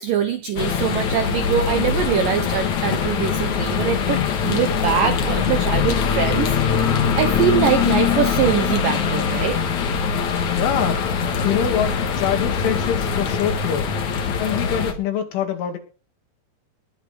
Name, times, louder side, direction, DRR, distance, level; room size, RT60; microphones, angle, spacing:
voice 1, 0.0-6.5 7.2-9.6, right 8 dB, 85° right, 9 dB, 1.9 m, -23 dB
sound 1, 0.6-14.9, left 6 dB, 55° left, 2.4 m, -22 dB
voice 2, 10.5-11.0 11.4-13.9 14.4-15.8, left 8 dB, 80° left, 5 dB, 4.7 m, -24 dB
20.0 x 8.8 x 5.1 m, 0.36 s
omnidirectional pair, 5.5 m